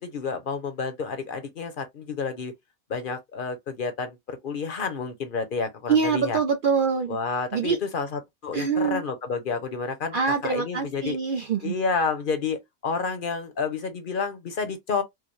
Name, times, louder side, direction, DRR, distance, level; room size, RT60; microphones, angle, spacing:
voice 1, 0.0-2.5 2.9-6.4 7.1-11.2 11.6-15.0, left 5 dB, 50° left, 0.7 m, -30 dB
voice 2, 5.9-7.2 7.5-7.8 8.5-9.0 10.1-11.8, right 6 dB, 80° right, 0.4 m, -24 dB
4.8 x 2.1 x 3.1 m
omnidirectional pair, 1.5 m